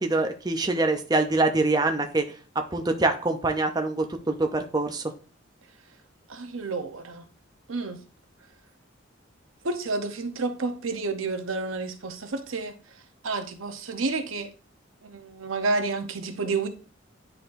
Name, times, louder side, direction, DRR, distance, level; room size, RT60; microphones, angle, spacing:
voice 1, 0.0-2.2 2.7-5.0, right 2 dB, 20° right, 0.5 m, -24 dB
voice 2, 6.3-7.3 7.7-8.0 9.6-12.7 13.2-14.5 15.0-16.7, right 3 dB, 90° right, 0.9 m, -30 dB
9.8 x 4.2 x 2.6 m
head